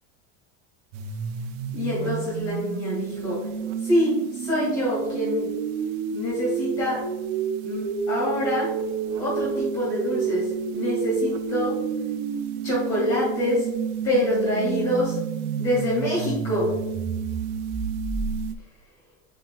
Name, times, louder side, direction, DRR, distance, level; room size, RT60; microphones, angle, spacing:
sound 1, 0.9-18.5, right 7 dB, 55° right, 0.7 m, -30 dB
voice 1, 1.7-3.5 3.8-5.5 6.1-7.1 7.6-8.7 9.2-11.8 12.6-13.7 14.0-15.2 15.6-16.8, left 1 dB, 40° left, -6 dB, 2.2 m, -25 dB
8.8 x 4.6 x 2.3 m, 1.0 s
cardioid pair, 165°, 38 cm